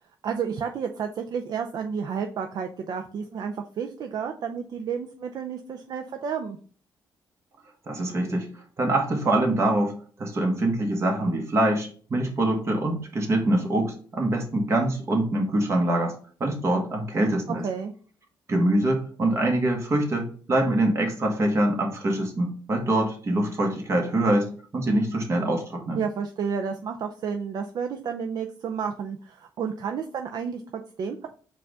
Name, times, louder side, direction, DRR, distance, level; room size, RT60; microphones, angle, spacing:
voice 1, 0.2-6.6 17.5-17.9 26.0-31.3, right 6 dB, 55° right, 5 dB, 0.4 m, -31 dB
voice 2, 7.9-8.5 8.8-9.9 10.2-16.1 16.4-17.6 18.5-26.0, right 1 dB, 35° right, 2 dB, 1.2 m, -24 dB
4.7 x 2.4 x 4.6 m, 0.43 s
cardioid pair, 120°, 8 cm